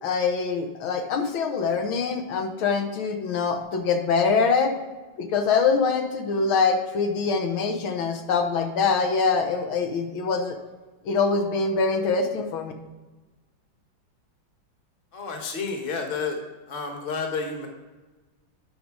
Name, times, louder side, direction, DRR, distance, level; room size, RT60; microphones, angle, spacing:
voice 1, 0.0-4.7 5.2-10.6 11.1-12.7, left 5 dB, 85° left, 5 dB, 1.8 m, -24 dB
voice 2, 15.1-16.4 16.7-17.7, left 4 dB, 35° left, 3 dB, 1.2 m, -30 dB
9.3 x 5.3 x 4.7 m, 1.2 s
omnidirectional pair, 2.2 m